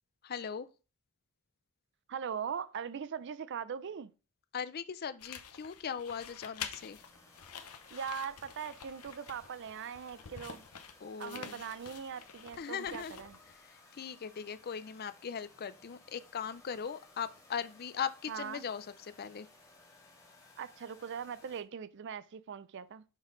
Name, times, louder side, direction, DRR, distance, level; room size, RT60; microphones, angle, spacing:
voice 1, 0.2-0.7 4.5-7.0 11.0-11.6 12.6-19.5, left 7 dB, 45° left, 0.4 m, -39 dB
voice 2, 2.1-4.1 7.9-10.6 11.2-13.3 18.3-18.6 20.6-23.0, right 7 dB, 55° right, 0.4 m, -40 dB
sound 1, 5.2-13.6, left 7 dB, 85° left, 0.8 m, -48 dB
sound 2, 6.7-21.6, left 2 dB, 15° left, 1.8 m, -60 dB
6.3 x 5.4 x 3.8 m
head